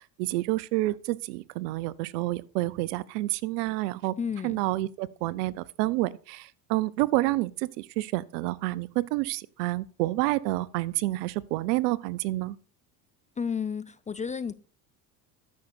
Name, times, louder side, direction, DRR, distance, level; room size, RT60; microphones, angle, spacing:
voice 1, 0.2-4.1 4.4-12.6, right 18 dB, 75° right, 0.7 m, -29 dB
voice 2, 4.2-4.6 13.4-14.5, left 6 dB, 15° left, 0.4 m, -32 dB
13.5 x 6.4 x 4.3 m
hypercardioid pair, 80°, 47 cm